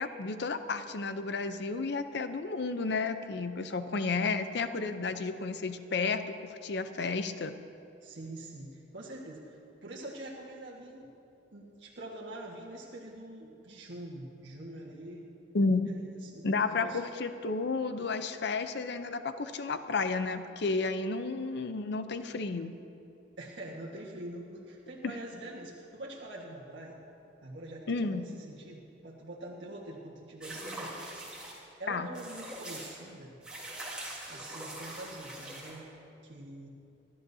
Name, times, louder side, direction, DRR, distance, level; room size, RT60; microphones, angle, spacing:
voice 1, 0.0-7.5 15.5-15.9 16.4-22.8 25.0-25.1 27.9-28.2 31.9-32.1, left 4 dB, 65° left, 10 dB, 0.6 m, -32 dB
voice 2, 8.0-11.1 11.5-15.3 15.8-17.0 23.4-27.0 27.4-31.0 31.8-33.3 34.3-35.9 36.2-36.7, right 1 dB, 75° right, -5 dB, 1.6 m, -45 dB
sound 1, 30.4-31.6 32.1-32.9 33.4-35.7, right 1 dB, 5° right, 3.5 m, -42 dB
27.5 x 12.5 x 2.8 m, 2.7 s
head